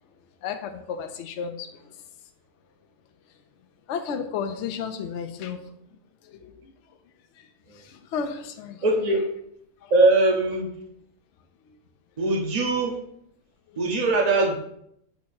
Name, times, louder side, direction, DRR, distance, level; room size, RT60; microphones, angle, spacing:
voice 1, 0.4-1.8 3.9-5.6 6.2-6.7 7.4-7.5 7.7-8.8 9.8-9.9 11.7-11.8, left 6 dB, 60° left, 6 dB, 0.8 m, -33 dB
voice 2, 8.8-9.2 9.9-10.7 12.2-12.9 13.8-14.6, right 2 dB, 30° right, 1 dB, 0.9 m, -21 dB
8.3 x 2.9 x 4.3 m, 0.73 s
omnidirectional pair, 1.6 m